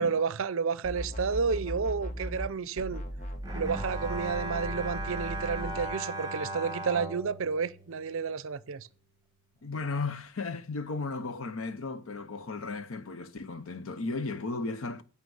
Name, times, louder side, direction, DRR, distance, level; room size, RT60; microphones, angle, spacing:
voice 1, 0.0-3.0 3.5-8.9, right 5 dB, 60° right, 0.5 m, -31 dB
sound 1, 0.8-2.5 2.8-5.9, equal, 35° left, 1.1 m, -38 dB
Bowed string instrument, 3.4-8.7, right 2 dB, 15° right, 1.1 m, -38 dB
voice 2, 9.6-15.0, left 3 dB, 65° left, 0.8 m, -35 dB
9.5 x 5.9 x 5.5 m
head